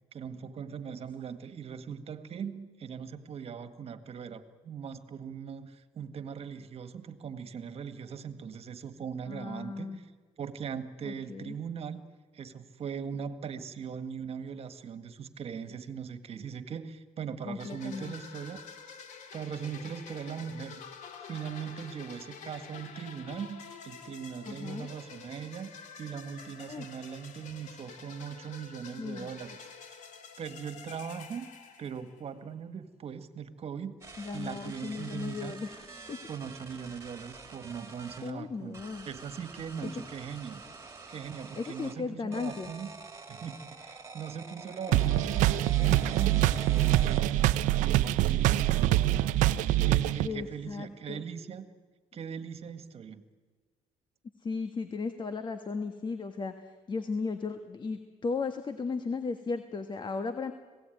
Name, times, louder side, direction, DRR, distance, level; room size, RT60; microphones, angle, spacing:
voice 1, 0.1-10.1 10.4-12.0 12.3-18.6 19.3-20.8 21.2-25.7 26.0-29.7 30.4-31.5 31.8-34.0 34.3-35.5 36.3-40.6 41.1-42.9 43.3-47.5 47.8-49.1 49.8-51.7 52.1-53.2, right 7 dB, 50° right, 11 dB, 1.9 m, -40 dB
voice 2, 9.3-10.0 11.0-11.5 17.4-18.1 24.4-24.9 26.7-26.9 29.0-29.3 34.2-36.2 38.2-39.1 39.8-40.0 41.5-42.7 44.9-45.1 50.2-51.2 54.4-60.5, left 4 dB, 40° left, 8 dB, 1.6 m, -36 dB
sound 1, 17.6-32.4, left 6 dB, 75° left, 2.5 m, -48 dB
sound 2, 34.0-38.3 38.7-42.0 42.3-47.5, right 3 dB, 20° right, 3.4 m, -47 dB
sound 3, 44.9-50.3, right 14 dB, 90° right, 0.8 m, -25 dB
26.0 x 18.0 x 9.3 m, 1.4 s
cardioid pair, 85°, 13 cm